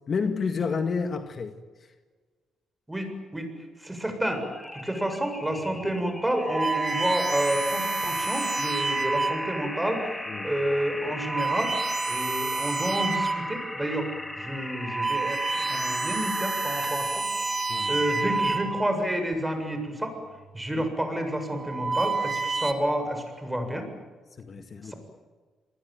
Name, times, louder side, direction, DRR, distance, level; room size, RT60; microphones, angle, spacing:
voice 1, 0.1-1.6 10.3-10.5 17.7-18.0 20.7-20.9 24.4-24.9, left 5 dB, 45° left, 2.0 m, -30 dB
voice 2, 2.9-3.5 3.8-4.4 4.7-10.1 10.4-11.7 12.1-14.1 14.4-17.2 17.9-20.1 20.5-23.8 24.8-24.9, right 1 dB, 10° right, 7.5 m, -29 dB
sound 1, 4.2-18.8, left 1 dB, 10° left, 3.1 m, -37 dB
sound 2, 5.4-5.6 6.2-9.6 10.3-10.5 11.1-13.6 14.0-14.1 14.6-19.1 20.1-20.5 21.4-22.7, right 3 dB, 25° right, 2.8 m, -29 dB
28.0 x 21.5 x 9.4 m
cardioid pair, 90°, 0 cm